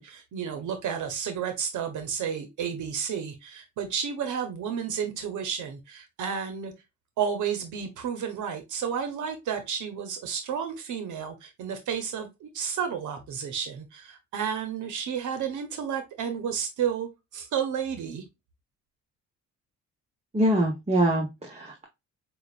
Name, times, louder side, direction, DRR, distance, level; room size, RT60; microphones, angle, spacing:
voice 1, 0.0-6.7 7.2-18.2, right 7 dB, 75° right, 7 dB, 1.0 m, -31 dB
voice 2, 20.3-21.8, right 1 dB, 20° right, 0 dB, 1.2 m, -24 dB
6.4 x 2.5 x 2.4 m, 0.22 s
cardioid pair, 90°, 30 cm